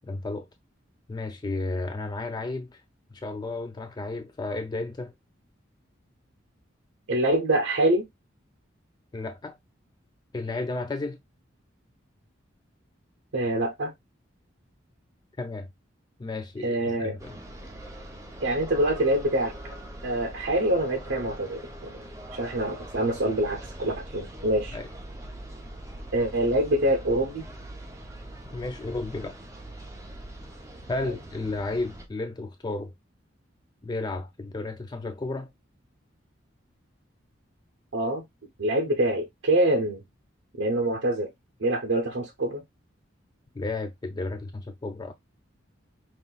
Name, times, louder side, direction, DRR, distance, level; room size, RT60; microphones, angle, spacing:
voice 1, 0.0-0.5 1.1-2.8 3.1-5.1 9.1-9.6 10.3-11.2 15.4-15.7 16.2-17.3 24.7-24.9 28.5-29.4 30.9-32.9 33.8-35.5 43.5-45.1, left 2 dB, 20° left, 0.3 m, -33 dB
voice 2, 7.1-8.1 13.3-13.9 16.6-17.2 18.4-19.5 20.0-22.0 22.3-24.8 26.1-27.4 37.9-38.2 38.6-40.0 40.6-41.3 41.6-42.6, right 1 dB, 75° right, 0.8 m, -25 dB
sound 1, 17.2-32.1, right 1 dB, 15° right, 0.7 m, -42 dB
5.3 x 3.0 x 2.3 m
head